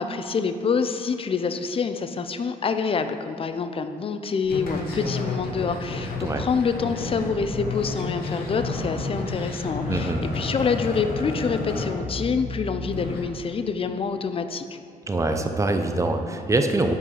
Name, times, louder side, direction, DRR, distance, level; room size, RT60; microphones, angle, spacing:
voice 1, 0.0-14.8, left 5 dB, 35° left, 9 dB, 0.5 m, -26 dB
sound 1, 4.4-13.2, left 3 dB, 90° left, 1.0 m, -31 dB
voice 2, 9.9-10.2 15.1-16.9, right 2 dB, 20° right, 6 dB, 0.6 m, -24 dB
5.5 x 4.7 x 5.5 m, 2.3 s
cardioid pair, 75°, 15 cm